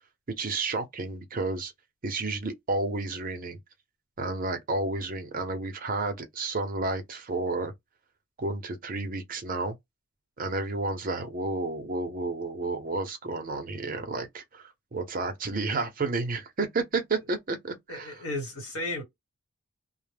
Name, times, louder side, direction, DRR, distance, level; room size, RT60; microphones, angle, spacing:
voice 1, 0.4-1.7 2.0-3.6 4.2-7.7 8.4-9.8 10.4-18.2, right 3 dB, 40° right, 0.6 m, -31 dB
voice 2, 17.9-19.0, left 2 dB, 75° left, 1.2 m, -34 dB
2.1 x 2.0 x 3.2 m
head